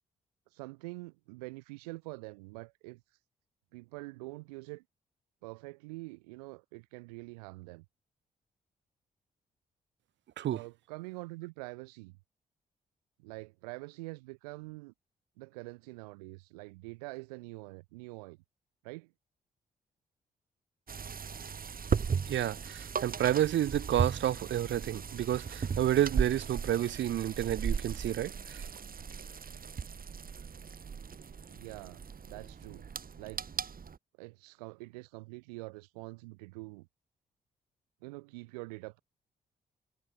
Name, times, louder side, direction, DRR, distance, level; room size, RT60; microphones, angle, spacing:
voice 1, 0.5-3.0 3.7-4.8 5.4-7.8 10.5-12.2 13.2-14.9 15.4-18.4 18.8-19.1 31.5-32.0 32.3-32.9 33.2-33.5 34.2-36.9 38.0-39.0, right 25 dB, 90° right, 6.7 m, -45 dB
sound 1, 20.9-34.0, right 6 dB, 50° right, 2.9 m, -37 dB
voice 2, 22.3-28.7, right 11 dB, 70° right, 6.8 m, -30 dB
hypercardioid pair, 45°, 19 cm